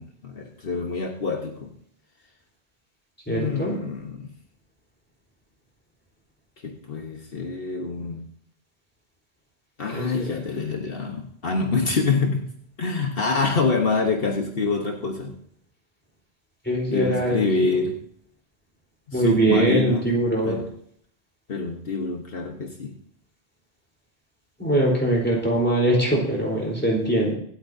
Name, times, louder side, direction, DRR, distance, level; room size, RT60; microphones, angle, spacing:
voice 1, 0.0-1.7 3.3-4.3 6.6-8.3 9.8-12.5 12.8-15.4 16.9-18.0 19.1-20.1 20.4-20.7 21.5-23.0, left 4 dB, 65° left, 2 dB, 1.3 m, -26 dB
voice 2, 3.3-3.7 9.9-10.2 16.7-17.4 19.1-20.6 24.6-27.3, right 1 dB, 10° left, -2 dB, 3.8 m, -22 dB
25.0 x 8.5 x 2.7 m, 0.65 s
omnidirectional pair, 1.0 m